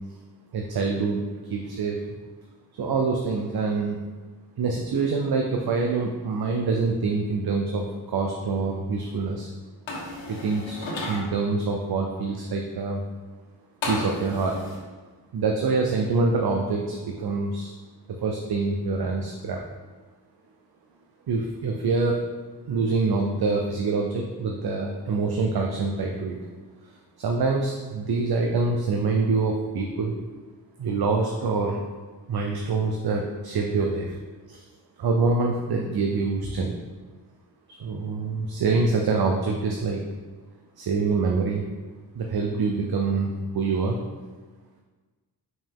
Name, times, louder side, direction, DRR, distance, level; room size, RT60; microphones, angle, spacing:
voice 1, 0.5-2.0 2.7-4.0 4.6-9.5 10.3-13.0 13.9-14.6 15.3-17.7 18.1-19.6 21.3-22.2 22.7-26.4 26.8-26.9 27.2-30.2 30.8-31.8 32.3-34.2 34.5-34.6 35.0-36.7 37.8-40.0 40.8-41.6 42.1-44.0, right 4 dB, 55° right, 1 dB, 0.7 m, -25 dB
sound 1, 9.9-11.2 13.8-14.8, left 1 dB, 90° left, 1.5 m, -33 dB
5.5 x 5.3 x 3.6 m, 1.3 s
cardioid pair, 75°, 44 cm